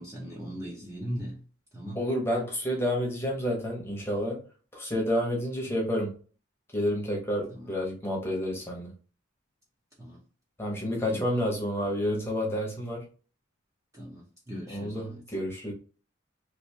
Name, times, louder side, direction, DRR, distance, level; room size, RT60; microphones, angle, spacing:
voice 1, 0.0-1.4 1.7-2.0 7.5-7.7 10.0-10.2 11.1-11.4 13.9-15.2, equal, 15° right, 0.8 m, -39 dB
voice 2, 1.9-4.4 4.7-6.1 6.7-8.9 10.6-13.1 14.7-15.7, equal, 10° left, 1.0 m, -29 dB
3.2 x 2.7 x 2.8 m
head